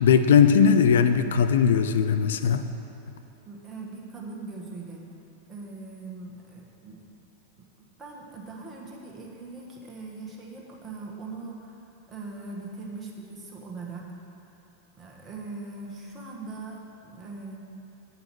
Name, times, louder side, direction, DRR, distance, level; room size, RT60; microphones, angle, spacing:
voice 1, 0.0-2.6, left 7 dB, 60° left, 9 dB, 0.4 m, -19 dB
voice 2, 3.5-5.0 5.5-7.0 7.8-14.1 14.9-17.6, right 3 dB, 20° right, -2 dB, 1.4 m, -40 dB
8.8 x 5.5 x 6.1 m, 2.9 s
figure-of-eight pair, 90°, 0 cm